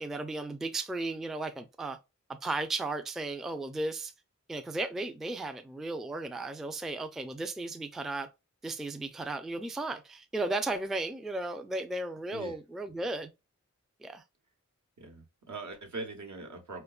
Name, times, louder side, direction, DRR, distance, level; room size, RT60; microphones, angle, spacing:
voice 1, 0.0-2.0 2.4-4.1 4.5-8.3 8.6-13.3 14.0-14.2, right 2 dB, ahead, 0.4 m, -35 dB
voice 2, 15.0-16.8, right 3 dB, 70° right, 1.0 m, -41 dB
4.7 x 2.2 x 2.3 m
wide cardioid pair, 40°, 31 cm